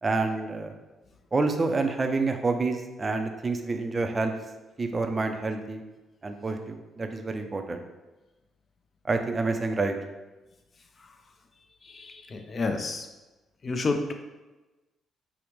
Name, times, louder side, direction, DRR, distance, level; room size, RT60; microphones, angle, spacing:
voice 1, 0.0-0.7 1.3-4.3 4.8-5.8 6.2-7.8 9.1-10.0, right 3 dB, 30° right, 5 dB, 0.4 m, -28 dB
voice 2, 11.8-13.1 13.6-14.1, left 3 dB, 40° left, 5 dB, 0.4 m, -30 dB
4.9 x 2.0 x 3.0 m, 1.1 s
cardioid pair, 90°, 0 cm